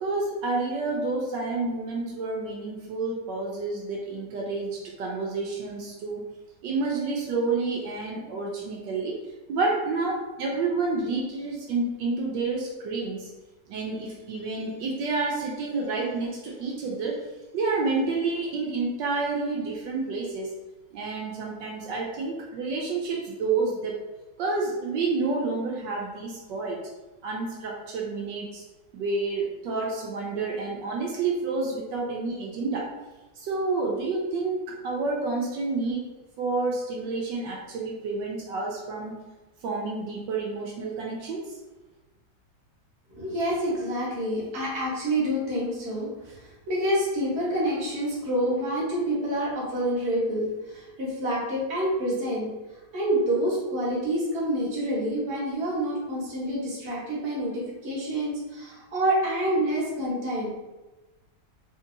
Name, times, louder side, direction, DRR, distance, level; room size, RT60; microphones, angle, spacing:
voice 1, 0.0-6.2 6.6-9.2 9.5-13.3 13.7-17.2 17.5-20.5 20.9-24.0 24.4-26.8 27.2-28.6 28.9-32.9 33.4-36.1 36.4-39.1 39.6-41.6, right 3 dB, 80° right, -2 dB, 1.2 m, -29 dB
voice 2, 43.1-52.5 52.9-60.5, right 1 dB, 40° right, -5 dB, 1.2 m, -27 dB
3.5 x 2.7 x 2.5 m, 1.1 s
omnidirectional pair, 2.0 m